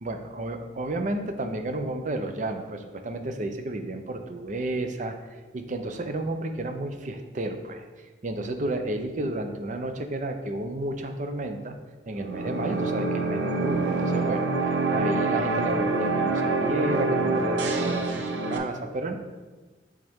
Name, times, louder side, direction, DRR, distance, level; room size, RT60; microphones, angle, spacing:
voice 1, 0.0-11.8 12.1-19.2, right 2 dB, 45° right, 6 dB, 0.5 m, -32 dB
sound 1, 12.2-18.6, right 3 dB, 90° right, 0.7 m, -26 dB
7.8 x 3.6 x 3.6 m, 1.3 s
head